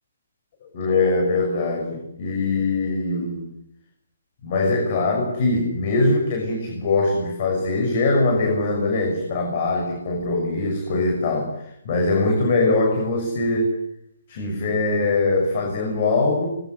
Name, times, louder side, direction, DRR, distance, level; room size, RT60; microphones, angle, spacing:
voice 1, 0.6-3.5 4.4-13.7 14.3-16.5, left 3 dB, 40° left, 3 dB, 6.1 m, -22 dB
24.5 x 21.5 x 8.1 m, 0.75 s
hypercardioid pair, 160°, 0 cm